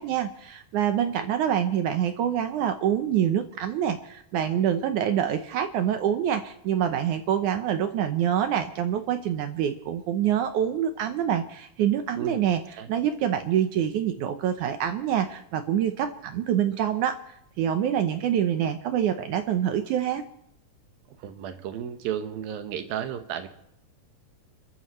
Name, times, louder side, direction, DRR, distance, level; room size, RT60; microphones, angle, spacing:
voice 1, 0.0-12.6 12.9-17.2 17.6-20.2, right 9 dB, 70° right, 8 dB, 2.0 m, -26 dB
voice 2, 21.2-23.5, right 9 dB, 90° right, 8 dB, 3.0 m, -33 dB
29.0 x 13.5 x 3.1 m, 0.77 s
omnidirectional pair, 4.0 m